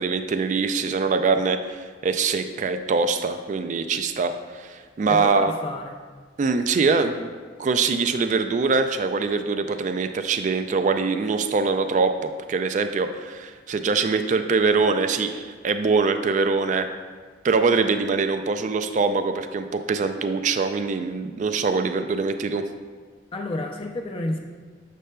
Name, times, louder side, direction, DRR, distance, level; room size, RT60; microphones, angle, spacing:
voice 1, 0.0-5.5 6.4-7.3 7.6-16.9 17.4-22.7, right 4 dB, 40° right, 8 dB, 0.3 m, -23 dB
voice 2, 5.0-6.0 23.3-24.4, left 2 dB, 30° left, 1 dB, 0.4 m, -30 dB
7.3 x 6.6 x 2.2 m, 1.5 s
head